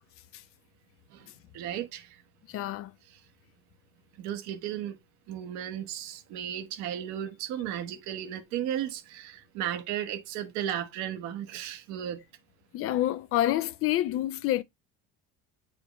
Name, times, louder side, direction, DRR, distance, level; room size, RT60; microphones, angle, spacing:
voice 1, 1.5-2.1 4.2-4.9 5.3-12.2, right 10 dB, 75° right, 1.2 m, -34 dB
voice 2, 2.5-2.9 12.7-14.6, left 14 dB, 50° left, 0.5 m, -27 dB
8.6 x 4.8 x 3.0 m
cardioid pair, 140°, 29 cm